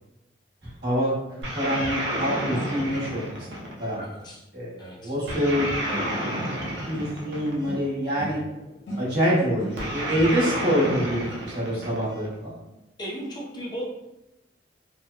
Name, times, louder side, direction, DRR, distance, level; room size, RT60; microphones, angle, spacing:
voice 1, 0.8-1.1 1.5-4.0 4.5-4.7 5.0-5.7 6.6-8.4 9.0-12.5, equal, 60° right, -8 dB, 1.1 m, -26 dB
sound 1, 1.4-4.0 5.3-7.8 9.8-12.3, equal, 85° right, 0.6 m, -30 dB
voice 2, 4.0-4.4 4.8-5.1 13.0-13.9, equal, 25° left, -4 dB, 0.5 m, -36 dB
sound 2, 5.9-7.3 7.6-10.2, right 1 dB, 80° left, 0.6 m, -39 dB
2.8 x 2.1 x 2.2 m, 0.95 s
head